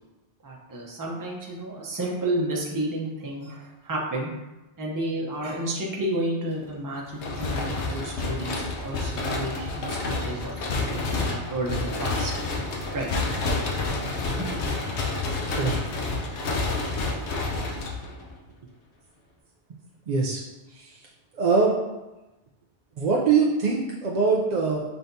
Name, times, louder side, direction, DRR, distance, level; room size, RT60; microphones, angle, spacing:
voice 1, 0.4-4.3 4.8-12.3 12.9-13.1 14.4-14.5, right 1 dB, 20° right, -3 dB, 0.7 m, -31 dB
sound 1, 7.2-18.4, left 3 dB, 75° left, 1.0 m, -29 dB
voice 2, 20.1-20.4 20.7-21.0 21.4-21.7 23.0-24.8, right 4 dB, 55° right, -2 dB, 0.5 m, -23 dB
5.7 x 3.4 x 2.7 m, 1.0 s
omnidirectional pair, 1.2 m